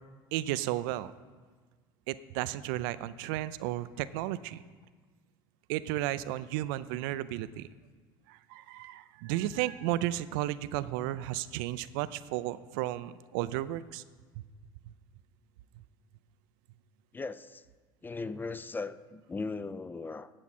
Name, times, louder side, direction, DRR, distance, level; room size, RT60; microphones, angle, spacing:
voice 1, 0.3-1.1 2.1-4.6 5.7-7.7 8.3-14.0, right 14 dB, 75° right, 15 dB, 0.4 m, -33 dB
voice 2, 17.1-17.6 18.0-20.3, left 3 dB, 15° left, 15 dB, 0.4 m, -38 dB
15.0 x 5.9 x 4.2 m, 1.5 s
hypercardioid pair, 85°, 12 cm